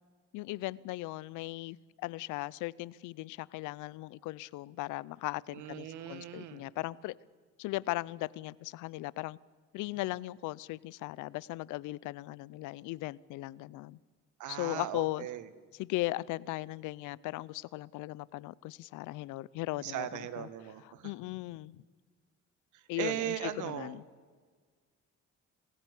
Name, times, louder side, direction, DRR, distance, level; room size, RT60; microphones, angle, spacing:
voice 1, 0.3-7.1 7.6-9.4 9.7-14.0 14.5-15.3 15.8-20.5 20.8-21.8 22.9-24.0, left 19 dB, 85° left, 0.6 m, -38 dB
voice 2, 5.5-6.7 14.4-15.4 19.8-21.1 23.0-24.0, right 12 dB, 80° right, 1.5 m, -38 dB
27.5 x 15.5 x 8.3 m
cardioid pair, 80°, 30 cm